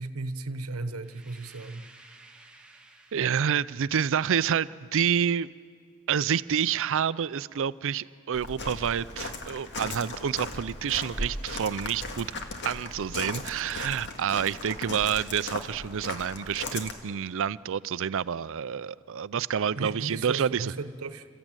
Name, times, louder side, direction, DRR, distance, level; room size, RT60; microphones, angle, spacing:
voice 1, 0.0-1.8 19.7-21.3, right 3 dB, 80° right, 11 dB, 1.1 m, -35 dB
sound 1, 1.0-3.8, right 2 dB, 5° right, 1.5 m, -54 dB
voice 2, 3.1-5.5 6.1-12.3 12.6-20.7, right 8 dB, 65° right, 18 dB, 0.5 m, -28 dB
Walk footsteps, 8.3-16.9, left 2 dB, 55° left, 1.9 m, -37 dB
28.0 x 14.5 x 9.0 m, 2.2 s
head